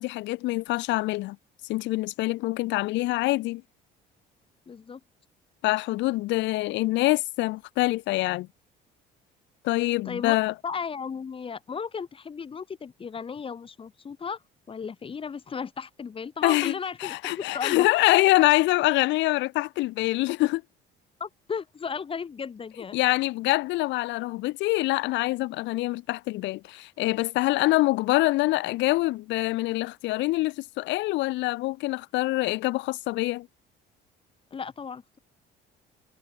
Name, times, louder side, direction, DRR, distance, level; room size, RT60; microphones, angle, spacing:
voice 1, 0.0-1.4 1.6-3.6 5.6-8.5 9.6-10.5 16.4-16.7 17.0-20.6 22.9-33.5, left 19 dB, 80° left, 0.9 m, -25 dB
voice 2, 4.7-5.0 10.0-10.3 10.6-14.4 14.7-17.9 21.2-23.0 34.5-35.2, left 6 dB, 30° left, 2.6 m, -35 dB
cardioid pair, 135°, 19 cm